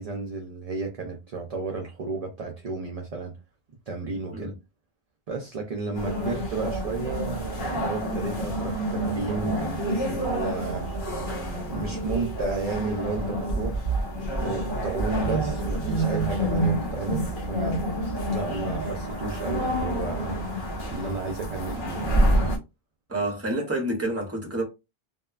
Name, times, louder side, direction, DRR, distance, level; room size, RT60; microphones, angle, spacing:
voice 1, 0.0-3.4 3.9-4.5 5.3-10.9 11.7-13.8 14.4-17.8 18.3-20.4 20.9-22.2, right 3 dB, 50° right, 0.5 m, -32 dB
sound 1, 5.9-22.6, right 1 dB, 55° left, 1.1 m, -28 dB
voice 2, 23.1-24.6, right 1 dB, 15° right, 0.7 m, -28 dB
2.7 x 2.2 x 2.3 m
omnidirectional pair, 1.0 m